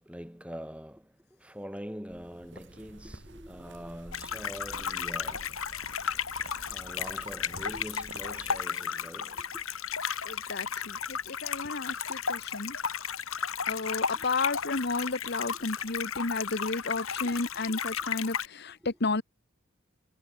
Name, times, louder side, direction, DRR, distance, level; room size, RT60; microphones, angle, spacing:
voice 1, 0.0-5.7 6.7-9.6 14.2-14.3 17.2-17.4 17.7-17.8, equal, 5° right, 6.0 m, -44 dB
sound 1, 2.1-8.7, right 2 dB, 55° right, 4.0 m, -49 dB
sound 2, 4.1-18.5, left 7 dB, 80° left, 2.9 m, -34 dB
voice 2, 10.2-12.8 13.7-19.2, left 3 dB, 50° left, 1.3 m, -32 dB
head